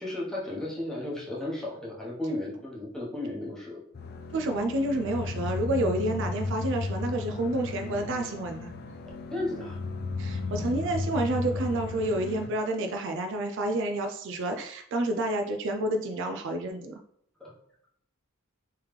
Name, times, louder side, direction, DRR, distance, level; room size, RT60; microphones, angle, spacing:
voice 1, 0.0-3.8 9.3-9.8 10.4-10.7 17.4-17.5, left 1 dB, ahead, -6 dB, 0.9 m, -34 dB
sound 1, 3.9-12.5, left 3 dB, 45° left, 0.3 m, -34 dB
voice 2, 4.3-8.7 10.2-17.0, right 1 dB, 60° right, 5 dB, 0.3 m, -29 dB
3.4 x 3.1 x 3.2 m, 0.68 s
head